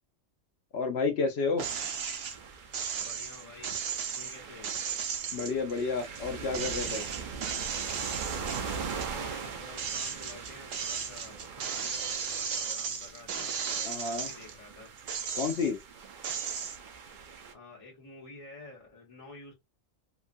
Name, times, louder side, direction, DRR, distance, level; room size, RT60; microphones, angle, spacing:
voice 1, 0.7-1.7 5.3-7.0 13.9-14.3 15.3-15.8, left 4 dB, 60° left, 0.8 m, -30 dB
sound 1, 1.6-17.5, right 5 dB, 55° right, 0.5 m, -42 dB
sound 2, 1.6-2.4 2.7-6.2 6.5-9.1 9.5-14.5 15.0-15.8 16.2-16.8, right 7 dB, 85° right, 1.0 m, -35 dB
voice 2, 3.0-3.8 4.1-4.7 8.7-14.9 17.5-19.5, left 3 dB, 25° left, 1.1 m, -50 dB
3.0 x 2.3 x 2.5 m
omnidirectional pair, 1.3 m